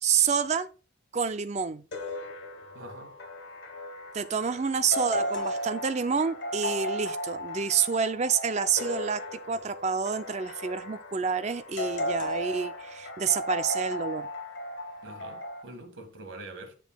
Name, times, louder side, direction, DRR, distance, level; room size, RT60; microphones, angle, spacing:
voice 1, 0.0-0.7 1.1-1.8 4.1-14.3, right 6 dB, 35° right, 0.4 m, -28 dB
sound 1, 1.9-15.6, left 1 dB, 65° left, 1.2 m, -35 dB
voice 2, 2.7-3.2 15.0-16.7, right 2 dB, 80° right, 1.7 m, -44 dB
10.0 x 6.9 x 2.2 m
head